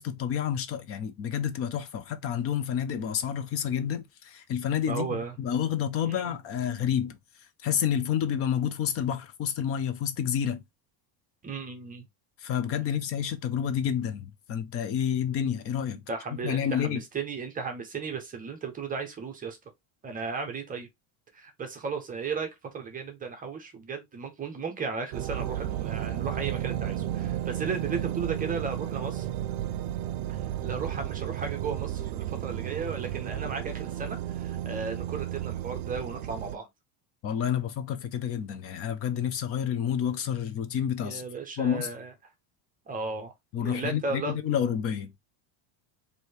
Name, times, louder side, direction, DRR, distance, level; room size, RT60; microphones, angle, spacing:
voice 1, 0.0-7.2 7.6-10.6 12.4-16.0 16.4-17.0 37.2-41.2 41.6-41.9 43.5-45.1, left 9 dB, 30° left, 0.4 m, -29 dB
voice 2, 4.9-5.3 6.1-6.4 11.4-12.0 16.1-19.6 20.0-20.9 21.3-29.3 30.3-36.7 41.0-42.1 42.9-43.3 43.6-44.3, right 5 dB, 15° right, 0.6 m, -35 dB
sound 1, 25.1-36.6, right 12 dB, 70° right, 0.6 m, -33 dB
3.1 x 2.7 x 4.4 m
cardioid pair, 170°, 49 cm